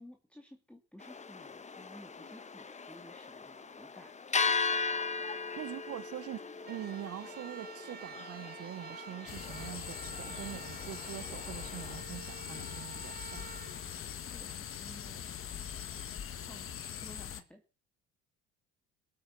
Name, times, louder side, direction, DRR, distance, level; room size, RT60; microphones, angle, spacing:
voice 1, 0.0-4.5 14.2-15.3 16.3-17.6, left 1 dB, 5° left, 2.2 m, -55 dB
sound 1, 1.0-12.0, left 4 dB, 25° left, 1.2 m, -38 dB
voice 2, 5.6-13.6, right 12 dB, 55° right, 0.9 m, -44 dB
sound 2, 6.6-14.7, right 7 dB, 30° right, 1.1 m, -50 dB
sound 3, 9.3-17.4, left 9 dB, 45° left, 1.5 m, -42 dB
18.5 x 8.6 x 5.9 m
cardioid pair, 95°, 29 cm